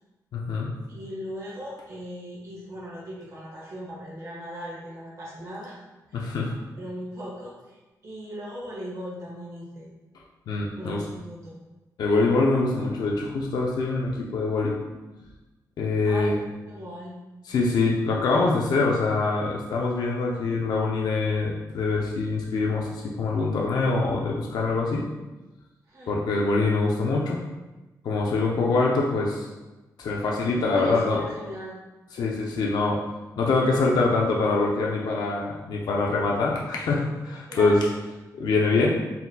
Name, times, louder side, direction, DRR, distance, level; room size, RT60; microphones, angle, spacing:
voice 1, 0.3-0.7 6.1-6.5 10.5-11.0 12.0-14.7 15.8-16.3 17.5-25.0 26.1-27.4 28.0-29.4 30.0-31.2 32.1-33.0 33.4-37.8 38.4-38.9, left 3 dB, 75° left, -2 dB, 0.5 m, -24 dB
voice 2, 0.9-5.8 6.1-6.3 6.8-9.9 10.7-11.6 16.0-16.4 16.7-17.1 25.9-26.2 30.7-31.8 37.5-37.9, equal, 50° right, -5 dB, 1.4 m, -38 dB
4.2 x 3.9 x 2.2 m, 1.1 s
wide cardioid pair, 175°, 7 cm